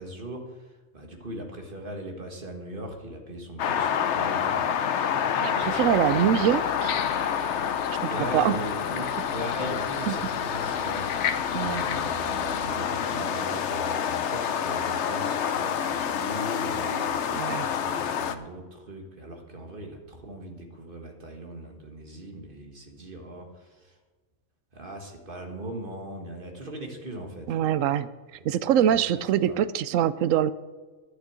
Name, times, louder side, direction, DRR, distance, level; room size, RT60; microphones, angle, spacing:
voice 1, 0.0-6.6 8.1-11.1 11.5-24.0 24.7-27.6 28.4-28.5 28.9-29.0 29.5-29.6, right 1 dB, 40° right, 3 dB, 1.8 m, -39 dB
sound 1, 3.6-18.4, left 8 dB, 65° left, 1.0 m, -28 dB
voice 2, 5.4-6.9 8.0-8.6 10.1-10.2 11.5-11.8 17.3-17.7 27.5-28.1 28.4-30.5, right 10 dB, 75° right, 15 dB, 1.0 m, -24 dB
sound 2, 5.6-12.7, left 8 dB, 85° left, 1.2 m, -38 dB
11.5 x 6.4 x 8.7 m, 1.3 s
omnidirectional pair, 1.4 m